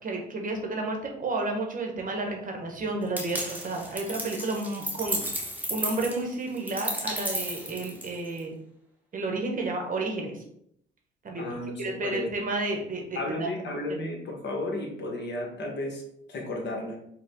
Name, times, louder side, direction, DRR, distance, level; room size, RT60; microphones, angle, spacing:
voice 1, 0.0-8.5 9.1-10.4 11.2-11.5 11.8-13.5 13.9-14.0, right 2 dB, 45° right, 1 dB, 1.0 m, -31 dB
sound 1, 3.2-8.4, right 1 dB, 10° right, 0.9 m, -33 dB
voice 2, 11.4-12.3 13.1-16.0 16.3-17.0, left 2 dB, 60° left, -1 dB, 1.3 m, -33 dB
4.8 x 2.3 x 3.6 m, 0.71 s
cardioid pair, 90°, 20 cm